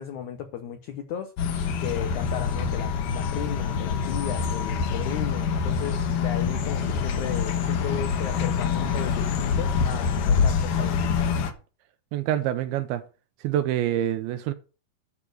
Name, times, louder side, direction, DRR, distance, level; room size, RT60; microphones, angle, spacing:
voice 1, 0.0-1.3 1.8-11.3, left 9 dB, 85° left, 1.6 m, -35 dB
sound 1, 1.4-11.5, left 6 dB, 65° left, 2.2 m, -25 dB
voice 2, 12.1-13.0 13.4-14.5, right 12 dB, 80° right, 2.3 m, -26 dB
11.0 x 4.8 x 6.5 m
omnidirectional pair, 4.8 m